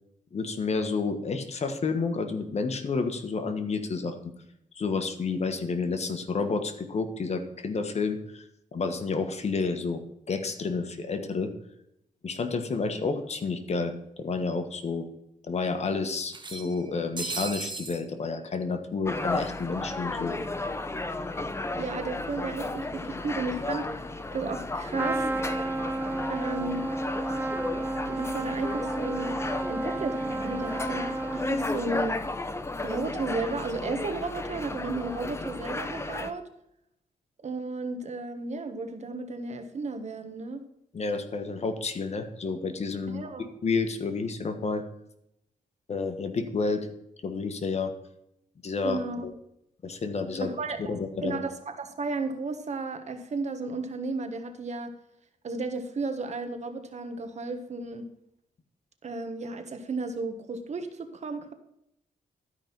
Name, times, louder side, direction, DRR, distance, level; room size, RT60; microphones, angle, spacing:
voice 1, 0.3-4.2 4.7-8.4 8.7-10.0 10.3-11.5 12.2-15.1 15.5-20.4 40.9-44.8 45.9-46.9 47.2-47.9 48.6-49.3 49.8-50.5 50.8-51.4, left 4 dB, 45° left, 7 dB, 1.4 m, -30 dB
sound 1, 12.9-13.0 13.3-13.4 14.4-14.5 14.9-15.0 16.3-18.0, right 3 dB, 30° right, 1.3 m, -36 dB
sound 2, 19.0-36.3, left 2 dB, 20° left, 0.8 m, -34 dB
voice 2, 21.8-25.2 26.3-26.9 28.0-29.4 29.7-32.2 32.8-36.4 37.4-40.6 43.1-43.5 48.8-49.2 50.4-51.0 51.2-54.9 55.4-58.0 59.0-61.5, right 3 dB, 50° right, 8 dB, 1.4 m, -34 dB
Trumpet, 24.9-31.9, right 2 dB, 15° right, 0.4 m, -32 dB
12.5 x 5.3 x 6.0 m, 0.78 s
cardioid pair, 105°, 15 cm